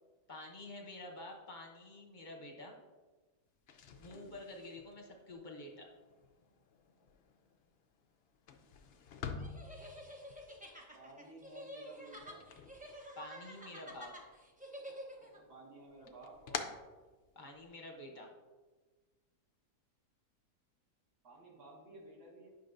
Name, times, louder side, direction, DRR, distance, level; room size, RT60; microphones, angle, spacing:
voice 1, 0.3-2.8 4.0-5.9 13.2-14.1 17.4-18.3, left 2 dB, 40° left, 1 dB, 0.7 m, -49 dB
sound 1, 3.6-13.6 13.9-14.7 15.1-17.7, left 6 dB, 85° left, 0.5 m, -49 dB
voice 2, 4.0-4.4 8.6-8.7 10.9-12.5 15.2-16.7 21.2-22.5, right 2 dB, 70° right, -3 dB, 2.2 m, -55 dB
sound 2, 9.4-15.4, equal, 10° right, 0.4 m, -50 dB
9.1 x 5.8 x 2.6 m, 1.3 s
omnidirectional pair, 1.7 m